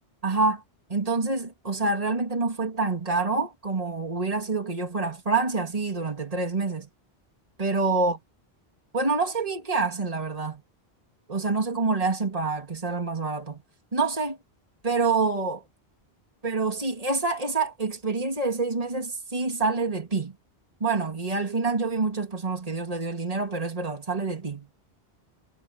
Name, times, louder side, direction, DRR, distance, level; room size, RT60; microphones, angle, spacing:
voice 1, 0.2-0.6 0.9-6.9 7.6-8.2 8.9-10.6 11.3-13.6 13.9-14.4 14.8-15.6 16.4-20.3 20.8-24.7, right 3 dB, 35° right, 2.5 m, -27 dB
omnidirectional pair, 1.1 m